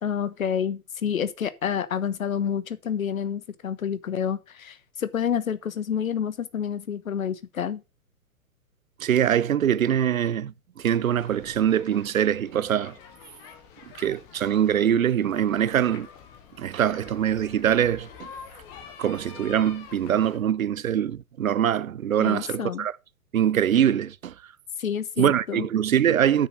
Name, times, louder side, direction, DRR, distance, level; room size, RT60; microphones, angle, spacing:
voice 1, 0.0-7.8 22.2-22.9 24.8-25.7, left 8 dB, 65° left, 1.2 m, -29 dB
voice 2, 9.0-12.9 14.0-16.1 16.6-18.3 19.0-22.9 23.3-24.3 25.2-26.5, right 9 dB, 65° right, 0.7 m, -23 dB
sound 1, 10.8-20.4, left 6 dB, 10° left, 0.4 m, -47 dB
9.0 x 6.7 x 5.3 m
figure-of-eight pair, 120°, 44 cm